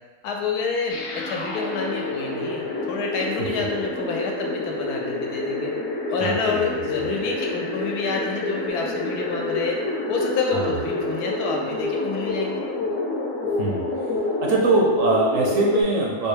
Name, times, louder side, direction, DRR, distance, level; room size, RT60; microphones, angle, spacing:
voice 1, 0.2-5.7 6.1-9.8 10.1-12.6, left 4 dB, 85° left, 0 dB, 1.1 m, -28 dB
sound 1, 0.9-15.8, left 2 dB, 65° left, 0.6 m, -28 dB
voice 2, 6.0-6.7 10.5-10.7 13.6-13.8 14.3-16.3, right 2 dB, 70° right, -2 dB, 0.8 m, -22 dB
4.5 x 2.2 x 3.2 m, 1.4 s
omnidirectional pair, 1.7 m